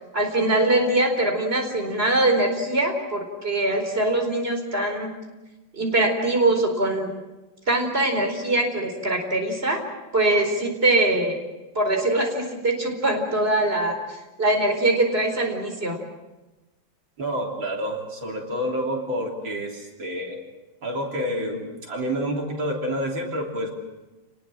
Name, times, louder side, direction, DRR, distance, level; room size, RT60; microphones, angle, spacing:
voice 1, 0.1-5.1 5.7-7.1 7.7-9.8 10.1-11.4 11.7-16.0, right 2 dB, 30° right, 3 dB, 4.7 m, -22 dB
voice 2, 17.2-20.4 20.8-23.7, equal, 85° right, 0 dB, 4.1 m, -28 dB
29.0 x 20.0 x 7.6 m, 1.1 s
omnidirectional pair, 2.1 m